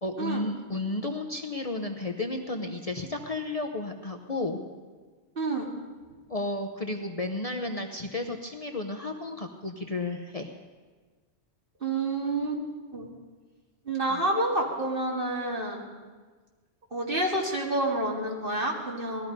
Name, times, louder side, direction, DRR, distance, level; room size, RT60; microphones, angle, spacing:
voice 1, 0.0-4.7 6.3-10.5 14.1-14.2, left 2 dB, 35° left, 3 dB, 0.8 m, -33 dB
voice 2, 5.4-5.7 11.8-12.6 12.9-13.1 13.8-15.9 16.9-19.3, right 2 dB, 50° right, -1 dB, 2.4 m, -28 dB
18.5 x 13.5 x 5.2 m, 1.4 s
omnidirectional pair, 1.2 m